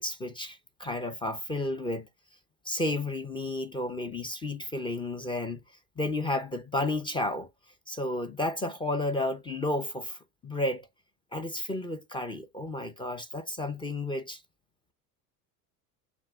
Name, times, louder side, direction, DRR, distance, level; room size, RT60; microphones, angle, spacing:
voice 1, 0.0-2.1 2.7-5.6 6.0-7.5 7.9-10.8 11.3-14.4, left 1 dB, 10° left, 0.4 m, -32 dB
7.3 x 2.5 x 2.3 m
hypercardioid pair, 85°, 49 cm